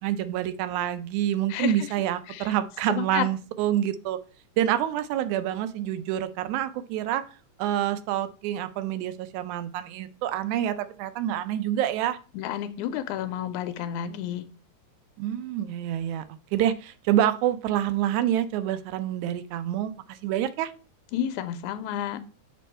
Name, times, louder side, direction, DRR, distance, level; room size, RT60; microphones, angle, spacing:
voice 1, 0.0-4.2 4.6-7.2 7.6-12.2 15.2-16.3 16.5-20.7, right 11 dB, 80° right, 12 dB, 2.0 m, -27 dB
voice 2, 1.5-1.9 2.3-2.5 2.9-3.3 12.3-14.5 21.1-22.2, left 10 dB, 90° left, 10 dB, 2.0 m, -31 dB
6.5 x 4.3 x 4.3 m, 0.36 s
omnidirectional pair, 3.5 m